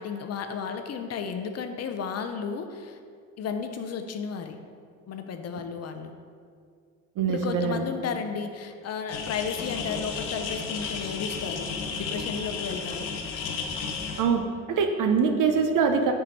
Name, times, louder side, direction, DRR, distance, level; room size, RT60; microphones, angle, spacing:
voice 1, 0.0-3.0 3.4-4.6 5.1-6.1 7.2-13.1, left 6 dB, 45° left, 7 dB, 0.6 m, -33 dB
voice 2, 7.2-7.8 14.2-16.1, right 5 dB, 60° right, 5 dB, 0.8 m, -24 dB
sound 1, 9.1-14.2, left 5 dB, 75° left, 0.8 m, -33 dB
4.6 x 4.3 x 5.2 m, 2.2 s
supercardioid pair, 65°, 36 cm